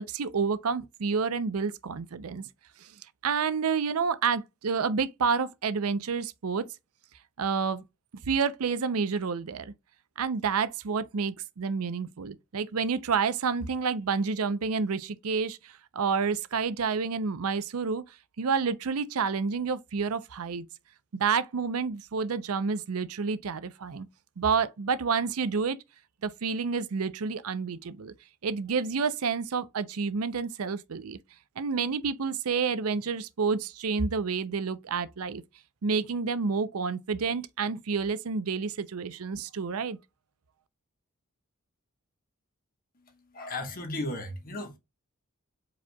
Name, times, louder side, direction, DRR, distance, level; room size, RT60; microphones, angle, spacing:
voice 1, 0.0-2.4 2.8-2.9 3.2-6.7 7.4-7.8 8.2-9.7 10.2-18.0 18.4-20.7 21.1-24.1 24.4-25.8 26.2-28.1 28.4-31.2 31.6-35.4 35.8-40.0, right 5 dB, 80° right, 0.6 m, -29 dB
voice 2, 42.9-44.8, left 1 dB, 40° left, 1.2 m, -36 dB
4.9 x 4.2 x 2.3 m
head